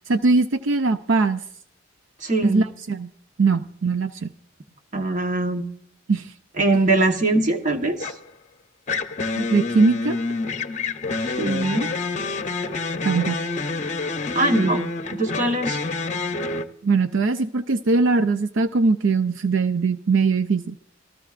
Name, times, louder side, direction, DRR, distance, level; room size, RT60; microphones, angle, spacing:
voice 1, 0.0-1.4 2.4-3.1 3.4-4.3 6.1-6.3 9.4-10.2 13.0-13.4 16.8-20.8, right 3 dB, 70° right, 9 dB, 0.5 m, -21 dB
voice 2, 2.2-2.7 4.9-5.7 6.6-8.1 11.2-11.9 14.3-14.9 15.1-15.8, right 2 dB, 40° right, 4 dB, 1.3 m, -22 dB
sound 1, 8.0-8.3 8.9-16.6, left 3 dB, 35° left, 0.8 m, -27 dB
26.5 x 14.0 x 2.5 m, 0.67 s
head